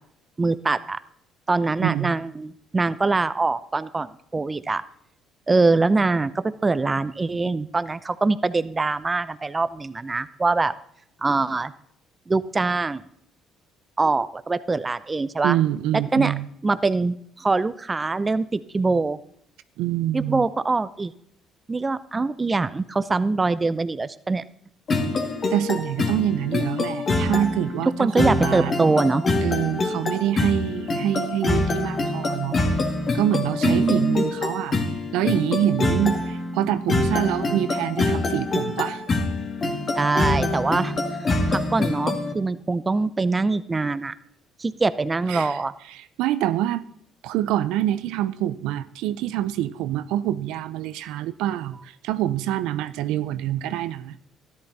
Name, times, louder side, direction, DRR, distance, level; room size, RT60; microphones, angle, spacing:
voice 1, 0.4-1.0 1.5-4.8 5.5-10.7 11.2-11.7 12.3-13.0 14.0-15.6 16.1-16.3 16.6-19.2 20.1-21.1 21.7-24.4 28.0-29.3 33.6-34.2 39.9-41.0 41.5-44.1 44.6-45.7, right 3 dB, 20° right, 14 dB, 0.6 m, -23 dB
voice 2, 1.8-2.1 15.4-16.5 19.8-20.5 25.5-28.9 29.4-32.6 33.1-34.8 35.1-39.0 45.3-45.6 45.9-46.8 47.2-54.2, right 12 dB, 85° right, 14 dB, 0.6 m, -26 dB
sound 1, 24.9-42.3, left 2 dB, 40° left, 2.2 m, -25 dB
13.0 x 11.0 x 4.1 m, 0.68 s
cardioid pair, 90°, 0 cm